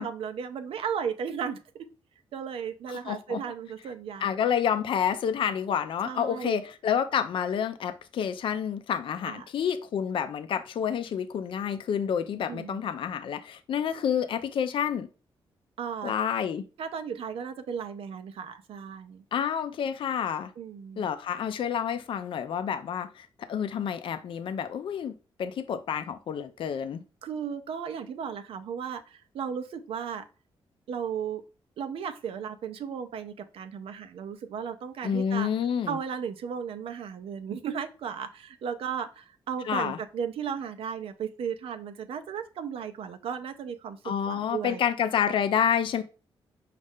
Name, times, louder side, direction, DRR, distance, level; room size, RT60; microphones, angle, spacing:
voice 1, 0.0-1.6 2.3-4.3 6.0-6.6 9.3-9.5 12.5-12.8 15.8-16.1 16.8-19.2 20.6-21.0 27.2-30.2 30.9-31.4 31.8-35.5 35.9-44.0 44.3-44.8, right 7 dB, 80° right, 0.6 m, -35 dB
voice 2, 2.9-3.4 4.2-15.1 16.0-16.7 19.3-20.5 21.0-25.1 25.4-27.0 35.0-36.0 39.6-40.0 44.0-46.0, left 8 dB, 65° left, 0.4 m, -29 dB
5.3 x 2.4 x 3.5 m
cardioid pair, 90°, 10 cm